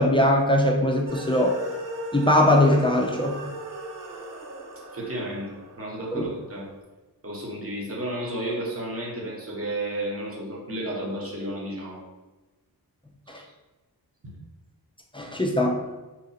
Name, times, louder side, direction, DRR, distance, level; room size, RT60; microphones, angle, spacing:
voice 1, 0.0-1.6 2.1-3.4 6.1-6.2 15.1-15.8, left 1 dB, 15° left, 0 dB, 0.3 m, -21 dB
sound 1, 1.1-6.5, right 1 dB, 50° right, 0.6 m, -37 dB
voice 2, 4.9-5.5 5.8-6.6 7.2-12.0 13.3-13.4 14.2-14.3, right 1 dB, 35° right, -3 dB, 1.0 m, -32 dB
2.9 x 2.5 x 4.1 m, 1.2 s
wide cardioid pair, 130°, 41 cm